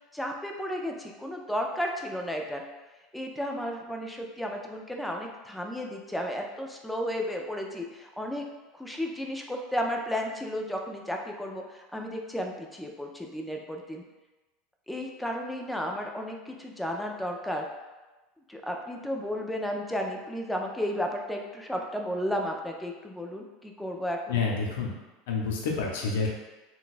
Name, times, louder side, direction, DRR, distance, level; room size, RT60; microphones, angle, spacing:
voice 1, 0.1-2.6 3.1-8.4 8.7-14.0 14.9-17.7 18.5-24.4, equal, 5° left, 1 dB, 0.4 m, -33 dB
voice 2, 24.3-24.9 25.3-26.3, left 4 dB, 85° left, -1 dB, 0.7 m, -28 dB
3.9 x 2.3 x 2.5 m, 1.1 s
supercardioid pair, 135°, 0 cm